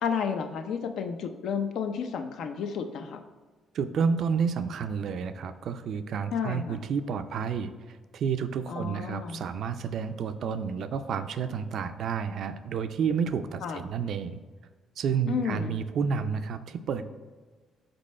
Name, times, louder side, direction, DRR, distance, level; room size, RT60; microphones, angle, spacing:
voice 1, 0.0-3.2 6.3-6.8 8.7-9.4 13.6-13.8 15.3-15.8, left 6 dB, 75° left, 7 dB, 0.5 m, -31 dB
voice 2, 3.7-14.4 15.0-17.1, right 6 dB, 65° right, 10 dB, 0.4 m, -30 dB
5.3 x 4.3 x 4.2 m, 1.4 s
cardioid pair, 100°, 0 cm